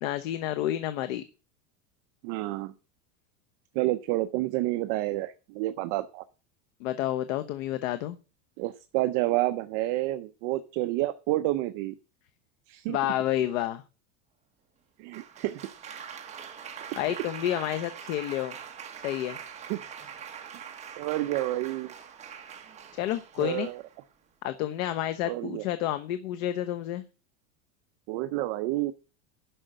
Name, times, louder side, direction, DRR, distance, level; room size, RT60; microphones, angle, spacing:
voice 1, 0.0-1.2 6.8-8.2 12.9-13.8 17.0-18.6 19.0-19.4 22.9-23.7 24.4-27.0, left 12 dB, 60° left, 11 dB, 1.1 m, -30 dB
voice 2, 2.2-2.7 3.7-6.2 8.6-11.9 12.7-13.0 15.0-15.7 17.1-17.2 19.7-19.8 21.0-21.9 23.4-23.8 25.2-25.6 28.1-28.9, right 17 dB, 35° right, 10 dB, 0.5 m, -29 dB
Applause, 15.1-24.0 24.8-25.2, right 7 dB, 15° right, 1.2 m, -43 dB
11.0 x 6.3 x 7.8 m, 0.33 s
supercardioid pair, 175°, 44 cm